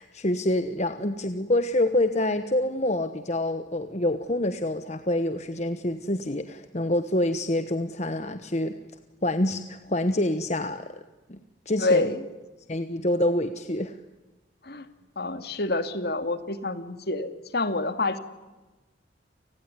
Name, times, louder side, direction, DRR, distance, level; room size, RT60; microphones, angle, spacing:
voice 1, 0.0-8.8 9.2-10.9 11.3-11.4 11.7-12.1 12.7-14.0, left 1 dB, 35° left, 9 dB, 1.2 m, -26 dB
voice 2, 11.8-12.2 14.6-14.9 15.2-18.2, left 2 dB, 55° left, 10 dB, 2.3 m, -27 dB
30.0 x 20.0 x 9.7 m, 1.1 s
head